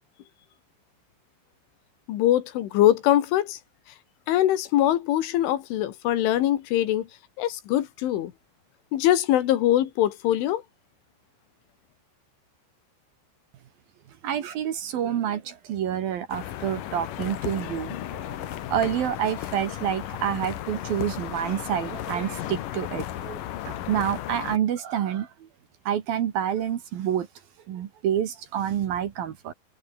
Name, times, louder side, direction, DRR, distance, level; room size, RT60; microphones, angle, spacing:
voice 1, 2.1-3.6 4.3-7.1 7.4-8.3 8.9-10.6, left 13 dB, 85° left, 4.3 m, -22 dB
voice 2, 14.2-23.4 23.6-25.5 25.8-27.3 27.7-29.5, right 9 dB, 60° right, 3.0 m, -28 dB
sound 1, 16.3-24.6, left 12 dB, 65° left, 2.3 m, -35 dB
omnidirectional pair, 5.4 m